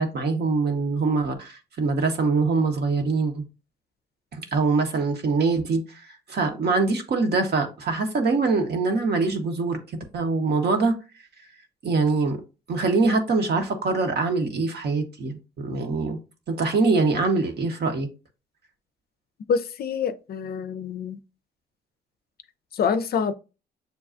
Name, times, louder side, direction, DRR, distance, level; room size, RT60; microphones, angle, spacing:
voice 1, 0.0-3.4 4.3-9.8 10.1-10.9 11.8-12.4 12.7-16.2 16.5-18.1, right 3 dB, 60° right, 0.9 m, -23 dB
voice 2, 19.5-21.2 22.7-23.3, left 6 dB, 55° left, 0.4 m, -26 dB
6.7 x 2.3 x 2.4 m
supercardioid pair, 55°, 19 cm